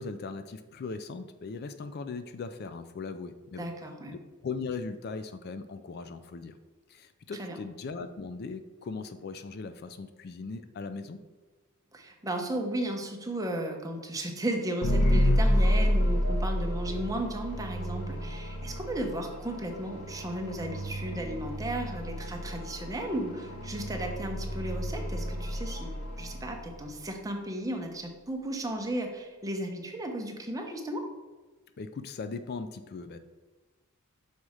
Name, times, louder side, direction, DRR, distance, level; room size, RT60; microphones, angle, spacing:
voice 1, 0.0-3.7 4.1-6.6 6.9-11.2 31.8-33.2, left 4 dB, 45° left, 10 dB, 0.3 m, -39 dB
voice 2, 3.6-4.1 7.4-7.6 11.9-31.1, right 1 dB, 15° right, 2 dB, 0.8 m, -35 dB
Soft Ambience, 14.8-27.0, equal, 90° left, 0.9 m, -30 dB
6.2 x 4.2 x 4.8 m, 1.3 s
head